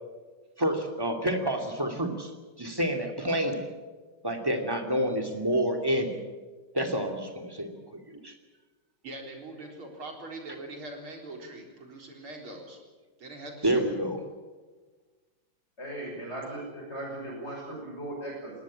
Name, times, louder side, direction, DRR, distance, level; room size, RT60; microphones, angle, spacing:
voice 1, 0.6-2.3 2.6-3.7 4.2-6.2 6.7-7.8 8.1-8.3 13.6-14.2, right 1 dB, 10° right, 5 dB, 2.6 m, -28 dB
voice 2, 9.0-12.8 13.2-13.9, right 2 dB, 75° right, 2 dB, 4.8 m, -42 dB
voice 3, 15.8-18.5, right 1 dB, 30° left, -1 dB, 6.5 m, -38 dB
20.5 x 19.0 x 8.9 m, 1.4 s
omnidirectional pair, 2.3 m